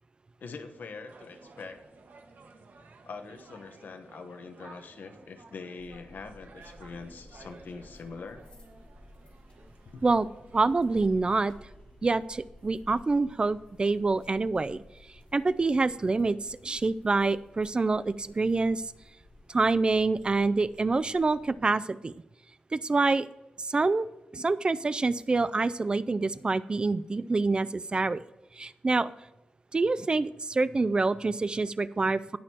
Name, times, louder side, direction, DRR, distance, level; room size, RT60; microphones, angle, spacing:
voice 1, 0.4-1.8 3.0-8.5 9.8-10.0, left 4 dB, 80° left, 7 dB, 1.0 m, -43 dB
sound 1, 1.1-11.7, right 3 dB, 70° right, 1.4 m, -54 dB
sound 2, 5.8-21.5, left 1 dB, 35° left, 2.5 m, -55 dB
voice 2, 10.5-11.5 12.0-14.8 15.3-18.9 19.5-22.1 22.7-23.3 23.6-24.1 24.3-28.2 28.6-29.1 29.7-32.4, right 3 dB, 30° right, 16 dB, 0.3 m, -26 dB
18.5 x 6.4 x 2.9 m, 1.0 s
wide cardioid pair, 115°, 3 cm